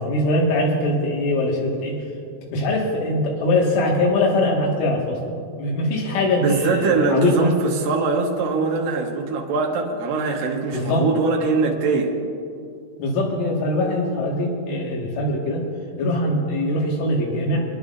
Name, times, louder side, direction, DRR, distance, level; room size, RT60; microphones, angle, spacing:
voice 1, 0.0-1.9 2.5-5.2 5.6-7.5 10.7-11.1 13.0-15.7 16.0-17.7, left 1 dB, 80° left, -2 dB, 4.2 m, -22 dB
voice 2, 6.4-12.1, right 4 dB, 80° right, -1 dB, 2.0 m, -22 dB
25.5 x 10.5 x 2.5 m, 2.3 s
omnidirectional pair, 5.6 m